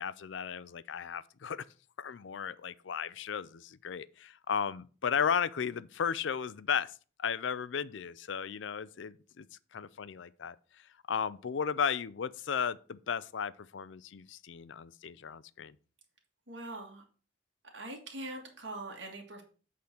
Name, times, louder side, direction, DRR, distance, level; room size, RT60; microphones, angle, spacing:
voice 1, 0.0-1.7 2.0-9.5 9.7-15.8, left 7 dB, 70° left, 0.5 m, -35 dB
voice 2, 16.5-17.0 17.7-19.4, right 2 dB, 65° right, 1.9 m, -42 dB
8.6 x 3.9 x 5.9 m
head